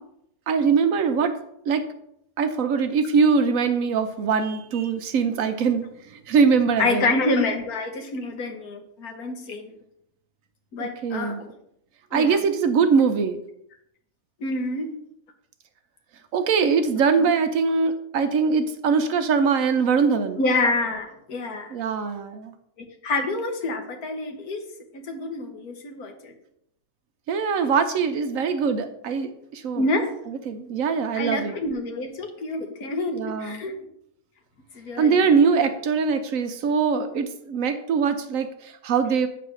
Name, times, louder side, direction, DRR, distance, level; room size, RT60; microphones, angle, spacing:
voice 1, 0.5-1.4 1.7-1.9 2.4-7.1 10.8-11.4 12.1-13.4 16.3-20.4 21.7-22.5 27.3-29.8 30.3-31.5 33.1-33.6 35.0-39.3, right 5 dB, 65° right, 8 dB, 1.0 m, -22 dB
voice 2, 6.8-9.7 10.7-11.5 12.1-12.4 14.4-14.9 17.2-17.3 20.4-21.7 22.8-24.7 24.9-26.3 29.8-30.1 31.1-33.8 34.7-35.7, left 2 dB, 75° left, 4 dB, 1.6 m, -27 dB
8.9 x 3.4 x 6.3 m, 0.75 s
omnidirectional pair, 1.6 m